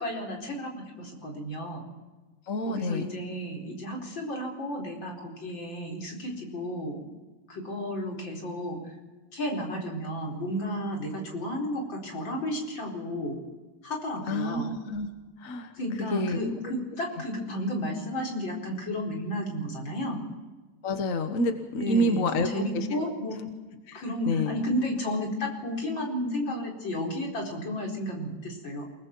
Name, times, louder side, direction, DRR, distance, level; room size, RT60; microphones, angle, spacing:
voice 1, 0.0-1.9 2.6-7.1 7.5-8.9 9.3-13.4 13.8-14.7 15.7-20.3 21.8-23.4 23.9-28.9, equal, 80° left, 0 dB, 5.3 m, -32 dB
voice 2, 2.5-3.1 14.3-15.1 15.4-15.7 16.1-16.4 20.8-22.5 22.7-23.1 23.9-24.6, left 1 dB, 45° left, 6 dB, 1.6 m, -28 dB
29.0 x 20.0 x 4.6 m, 1.3 s
omnidirectional pair, 2.1 m